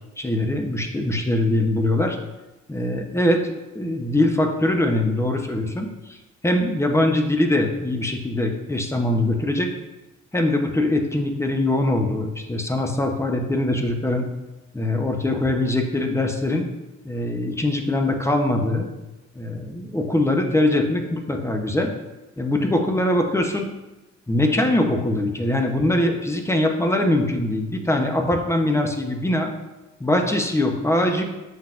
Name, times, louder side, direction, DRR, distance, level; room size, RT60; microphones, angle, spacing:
voice 1, 0.2-2.2 2.7-6.2 6.4-9.7 10.3-14.3 14.7-16.7 17.0-18.9 19.3-21.9 22.4-23.7 24.3-29.5 30.0-31.2, left 1 dB, 10° left, 4 dB, 0.7 m, -22 dB
7.2 x 5.7 x 2.5 m, 1.0 s
cardioid pair, 90°, 30 cm